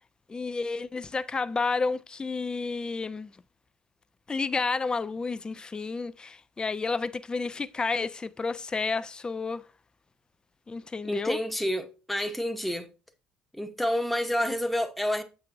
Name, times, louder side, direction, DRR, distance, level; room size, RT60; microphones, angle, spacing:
voice 1, 0.3-3.3 4.3-9.6 10.7-11.4, left 4 dB, 20° left, 0.3 m, -31 dB
voice 2, 11.1-12.9 13.5-15.2, equal, 5° left, 0.9 m, -29 dB
7.3 x 6.0 x 2.6 m
hypercardioid pair, 65°, 4 cm